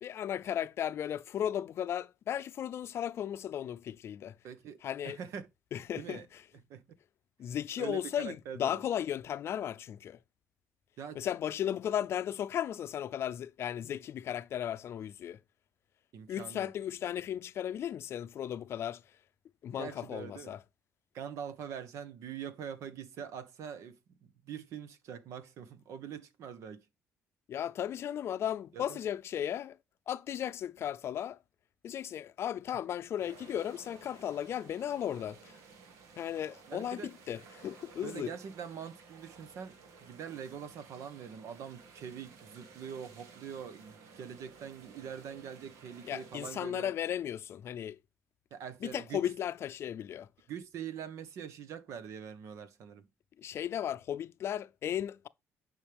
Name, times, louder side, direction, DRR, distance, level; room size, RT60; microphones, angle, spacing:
voice 1, 0.0-4.3 4.8-5.2 5.7-6.2 7.4-10.2 11.1-15.4 16.3-19.0 19.6-20.6 27.5-29.8 30.1-31.4 31.8-35.6 36.2-38.3 46.1-48.0 48.8-50.3 53.4-55.3, left 10 dB, 55° left, 0.5 m, -35 dB
voice 2, 4.4-4.8 5.0-5.5 6.0-6.3 6.5-6.8 7.8-8.8 11.0-11.2 16.1-16.7 19.8-20.5 21.1-26.9 28.7-29.0 36.7-37.1 38.0-46.9 48.5-49.3 50.5-53.1, right 8 dB, 70° right, 1.3 m, -44 dB
sound 1, 33.2-46.6, right 5 dB, 85° right, 1.8 m, -55 dB
10.5 x 5.4 x 3.5 m
cardioid pair, 115°, 5 cm